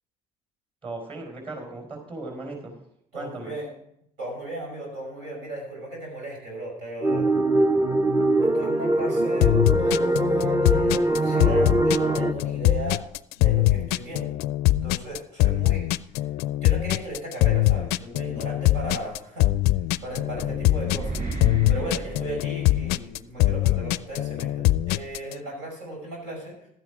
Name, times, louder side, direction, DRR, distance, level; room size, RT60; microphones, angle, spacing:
voice 1, 0.8-2.7 3.1-3.5, right 2 dB, 30° right, 3 dB, 4.4 m, -37 dB
voice 2, 3.1-3.7 4.2-7.3 8.4-13.0 13.4-14.3 14.8-15.8 16.6-19.5 20.0-21.2 21.7-26.6, right 1 dB, 80° right, -2 dB, 5.8 m, -36 dB
sound 1, 7.0-12.3, right 2 dB, 15° right, 0.7 m, -22 dB
sound 2, 9.4-25.3, left 16 dB, 70° left, 0.4 m, -22 dB
sound 3, 19.7-23.1, right 3 dB, 50° right, 3.2 m, -34 dB
12.5 x 9.1 x 4.9 m, 0.72 s
supercardioid pair, 75°, 17 cm